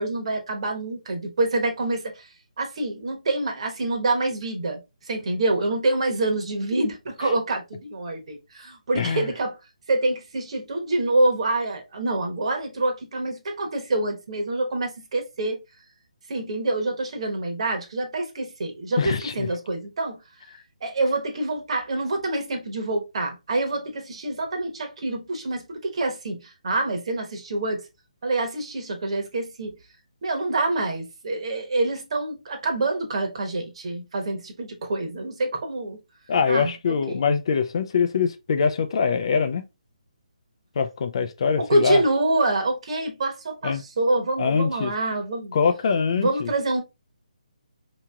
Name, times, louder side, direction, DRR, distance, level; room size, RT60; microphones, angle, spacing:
voice 1, 0.0-2.3 2.6-4.8 5.1-9.5 9.9-15.6 16.3-20.2 20.8-27.8 28.2-29.7 30.2-36.0 36.5-37.2 41.6-45.5 46.2-46.8, right 2 dB, 50° right, 1.0 m, -26 dB
voice 2, 9.0-9.3 19.0-19.5 36.3-39.7 40.8-42.0 43.6-43.8 44.4-44.9 45.5-46.5, left 6 dB, 45° left, 0.4 m, -23 dB
4.6 x 2.9 x 2.2 m
figure-of-eight pair, 145°, 4 cm